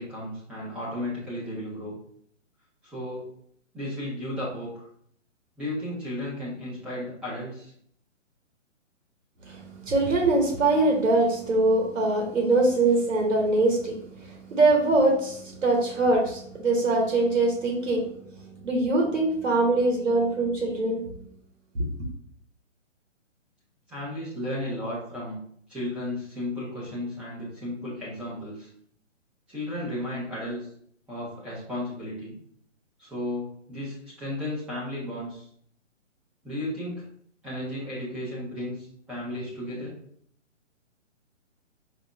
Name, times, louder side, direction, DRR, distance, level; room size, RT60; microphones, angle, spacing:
voice 1, 0.0-2.0 2.8-3.2 3.7-4.9 5.6-7.7 23.9-25.3 25.7-28.7 29.5-30.7 31.1-32.3 33.0-35.5 36.4-37.0 37.4-39.9, left 1 dB, 5° right, -9 dB, 0.5 m, -34 dB
voice 2, 9.4-18.1 18.4-21.2 21.7-21.8, right 2 dB, 85° right, 0 dB, 1.2 m, -23 dB
5.1 x 2.1 x 3.3 m, 0.66 s
hypercardioid pair, 150°, 37 cm